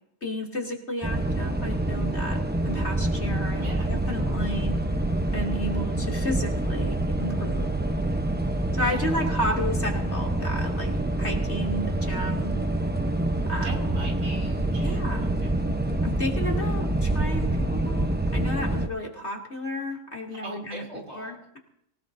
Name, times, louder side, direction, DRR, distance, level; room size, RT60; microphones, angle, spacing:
voice 1, 0.2-4.8 5.3-7.7 8.7-10.9 11.2-12.5 13.5-13.9 14.8-15.3 16.0-20.8 21.1-21.6, left 1 dB, 40° left, -1 dB, 3.1 m, -32 dB
sound 1, 1.0-18.9, right 1 dB, 10° right, 0.5 m, -26 dB
voice 2, 3.6-3.9 8.8-9.4 13.6-15.5 20.3-21.4, right 1 dB, 65° right, 0 dB, 6.0 m, -41 dB
26.0 x 17.5 x 2.7 m, 0.73 s
omnidirectional pair, 1.7 m